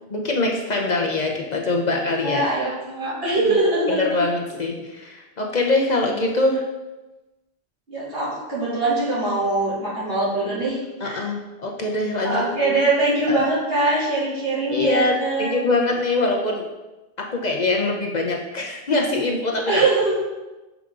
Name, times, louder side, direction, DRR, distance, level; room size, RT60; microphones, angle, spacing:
voice 1, 0.1-2.4 3.4-3.5 3.9-6.6 11.0-12.7 13.3-13.5 14.7-16.6 17.2-19.8, left 2 dB, 45° left, 1 dB, 0.9 m, -23 dB
voice 2, 2.2-4.0 7.9-11.2 12.2-15.5 19.7-20.2, right 2 dB, 70° right, -9 dB, 2.9 m, -22 dB
7.0 x 5.0 x 3.8 m, 1.1 s
omnidirectional pair, 1.0 m